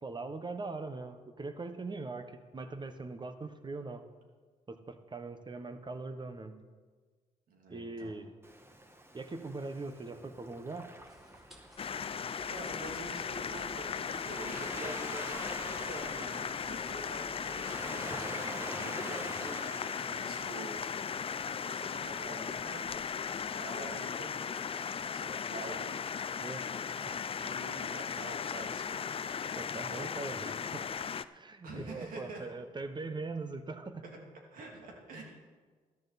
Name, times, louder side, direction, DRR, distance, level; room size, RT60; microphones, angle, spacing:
voice 1, 0.0-4.0 4.7-6.6 7.7-8.3 9.1-10.9 14.8-15.0 26.4-26.6 27.0-27.2 29.5-30.9 31.3-34.0, right 3 dB, 30° right, 9 dB, 1.3 m, -41 dB
voice 2, 7.5-8.1 12.5-20.8 21.7-22.9 23.5-24.4 25.1-26.0 27.4-29.1 31.6-32.4 34.0-34.2 34.5-35.2, right 2 dB, 80° right, 0 dB, 2.9 m, -46 dB
Waves surf, 8.4-26.3, right 1 dB, 15° right, 1.6 m, -48 dB
sound 1, 11.0-18.2, equal, ahead, 4.1 m, -59 dB
sound 2, 11.8-31.2, left 7 dB, 40° left, 0.5 m, -37 dB
13.5 x 12.5 x 4.2 m, 1.5 s
cardioid pair, 70°, 14 cm